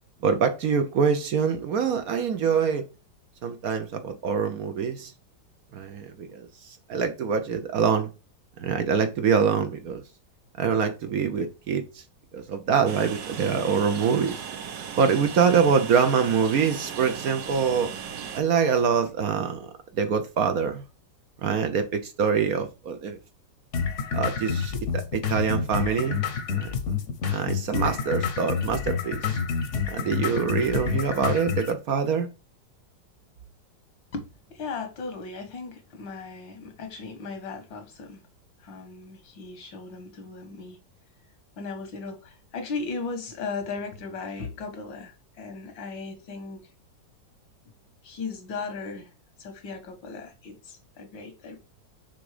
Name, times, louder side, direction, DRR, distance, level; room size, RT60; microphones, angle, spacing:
voice 1, 0.2-2.9 3.4-5.1 5.7-8.1 8.6-10.0 10.6-12.0 12.3-14.4 14.9-17.9 18.3-20.8 21.4-23.2 24.1-26.2 26.5-26.8 27.3-29.4 29.9-32.3, right 6 dB, 60° right, 1.1 m, -25 dB
Train, 12.9-18.4, right 7 dB, 75° right, 1.6 m, -37 dB
sound 1, 23.7-31.7, left 6 dB, 50° left, 1.0 m, -28 dB
voice 2, 34.5-38.2 38.6-40.8 41.6-46.7 48.0-49.1 49.4-51.6, left 4 dB, 85° left, 2.1 m, -37 dB
6.1 x 3.7 x 5.0 m
omnidirectional pair, 2.0 m